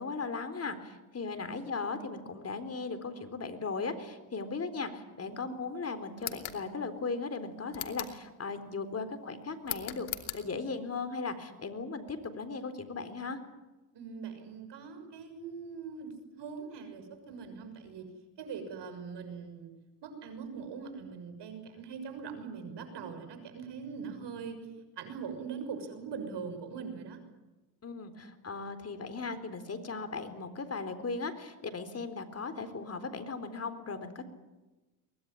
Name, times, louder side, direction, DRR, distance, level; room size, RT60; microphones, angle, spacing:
voice 1, 0.0-10.1 10.3-13.4 27.8-34.2, left 4 dB, 30° left, 10 dB, 4.0 m, -37 dB
sound 1, 6.2-6.6 7.7-8.2 9.6-10.4, left 14 dB, 70° left, 2.9 m, -39 dB
voice 2, 13.9-18.1 18.4-19.7 20.0-24.7 25.0-27.2, right 5 dB, 55° right, 8 dB, 6.5 m, -42 dB
23.5 x 20.0 x 9.9 m, 1.1 s
supercardioid pair, 95°, 50 cm